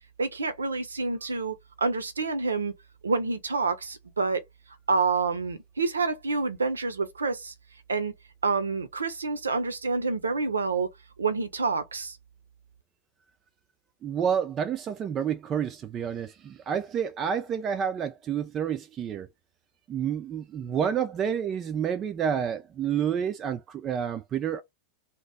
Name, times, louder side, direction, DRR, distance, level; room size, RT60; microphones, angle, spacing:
voice 1, 0.2-2.7 3.0-4.4 4.9-7.5 7.9-8.1 8.4-10.9 11.2-12.2, right 4 dB, 75° right, 0.5 m, -28 dB
voice 2, 14.0-19.3 19.9-24.6, right 8 dB, 30° right, 0.3 m, -29 dB
2.9 x 2.0 x 3.5 m
figure-of-eight pair, 90°, 0 cm